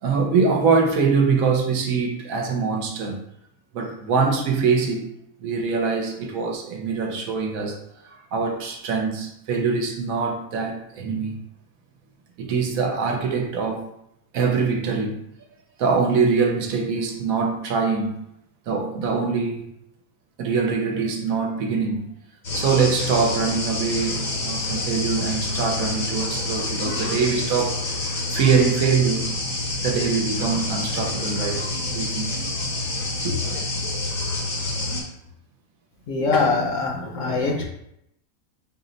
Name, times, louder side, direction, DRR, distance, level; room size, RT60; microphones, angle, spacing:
voice 1, 0.0-3.2 3.7-5.1 5.4-11.4 12.4-13.9 14.3-15.2 15.8-18.2 18.7-19.6 20.4-22.1 22.5-27.9 28.3-29.4 29.8-32.4 33.2-33.4, right 5 dB, 70° right, 2 dB, 1.0 m, -23 dB
sound 1, 22.4-35.0, left 2 dB, 45° left, 0.6 m, -27 dB
voice 2, 36.1-37.6, left 4 dB, 65° left, 1 dB, 0.9 m, -23 dB
4.1 x 2.0 x 3.8 m, 0.76 s
omnidirectional pair, 1.5 m